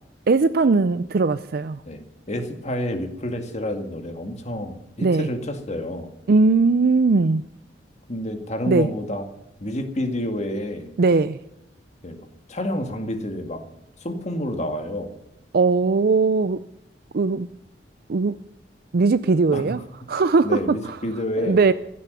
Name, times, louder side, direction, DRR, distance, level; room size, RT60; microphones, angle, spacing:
voice 1, 0.3-1.8 5.0-5.3 6.3-7.4 8.7-8.9 11.0-11.4 15.5-16.6 17.1-17.5 18.1-18.4 18.9-19.8 20.1-21.0 21.4-21.7, right 4 dB, 55° right, 0.5 m, -19 dB
voice 2, 1.9-6.1 8.1-9.2 9.6-10.9 12.0-13.6 14.0-15.1 19.5-19.8 20.4-21.6, left 1 dB, 40° left, 2.1 m, -29 dB
16.0 x 12.0 x 6.9 m
head